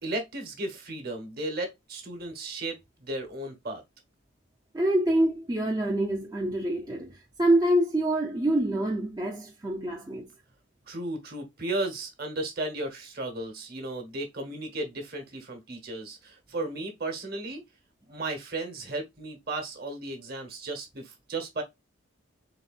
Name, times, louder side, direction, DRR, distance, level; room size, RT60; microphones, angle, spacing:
voice 1, 0.0-3.8 10.9-17.6 18.1-21.6, right 2 dB, 50° right, 1.2 m, -35 dB
voice 2, 4.7-10.3, right 1 dB, 20° right, 0.5 m, -26 dB
4.1 x 3.3 x 2.4 m
head